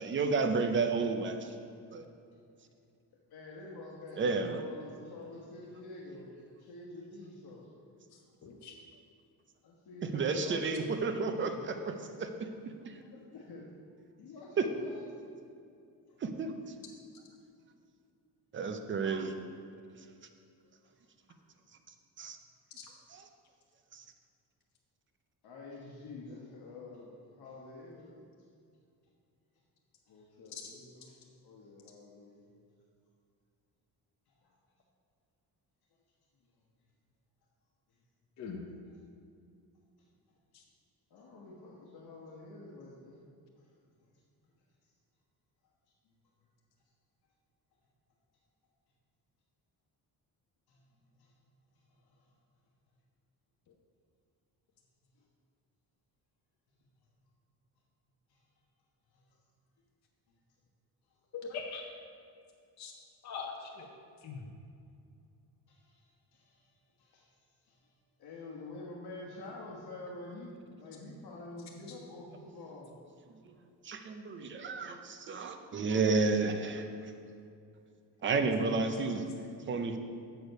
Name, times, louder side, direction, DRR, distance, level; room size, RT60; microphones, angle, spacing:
voice 1, 0.0-1.5 1.9-2.0 4.2-4.6 10.1-11.9 12.2-12.5 12.9-13.0 14.6-14.7 16.2-16.5 18.5-19.3 22.2-22.4 23.1-23.2 23.9-24.0 73.8-76.9 78.2-79.2 79.7-80.0, right 4 dB, 30° right, 6 dB, 0.5 m, -31 dB
voice 2, 3.3-7.9 9.6-12.0 13.0-13.7 14.2-15.1 16.1-16.2 19.2-19.3 25.4-28.2 30.1-31.2 31.4-32.5 34.4-34.6 38.9-39.0 41.1-43.2 43.6-43.7 44.1-44.2 46.0-46.1 50.7-50.9 51.2-51.3 51.9-52.3 58.3-58.4 59.1-59.4 61.1-61.2 65.7-66.7 67.0-67.4 67.6-67.9 68.2-73.0 78.4-79.2, left 2 dB, 65° left, -3 dB, 1.2 m, -48 dB
voice 3, 8.4-8.7 38.4-38.6 61.3-61.8 62.8-62.9 63.2-63.9 64.2-64.4, left 5 dB, 45° left, 0 dB, 0.8 m, -41 dB
6.9 x 6.4 x 5.3 m, 2.4 s
cardioid pair, 165°, 40 cm